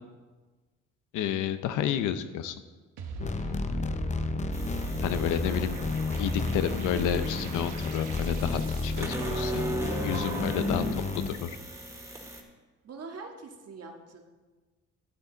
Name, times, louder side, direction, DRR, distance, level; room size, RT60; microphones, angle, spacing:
voice 1, 1.1-2.6 5.0-5.8 6.2-9.6 10.0-11.6, left 9 dB, 90° left, 11 dB, 0.7 m, -30 dB
sound 1, 3.0-10.8, right 5 dB, 85° right, 1.2 m, -39 dB
sound 2, 3.2-11.3, left 3 dB, 25° left, 0.6 m, -32 dB
sound 3, 4.5-12.4, right 1 dB, 10° right, 1.9 m, -38 dB
voice 2, 5.1-5.6 6.9-7.0 12.8-14.2, right 4 dB, 55° right, 3 dB, 1.6 m, -44 dB
12.0 x 8.7 x 3.9 m, 1.3 s
cardioid pair, 90°, 30 cm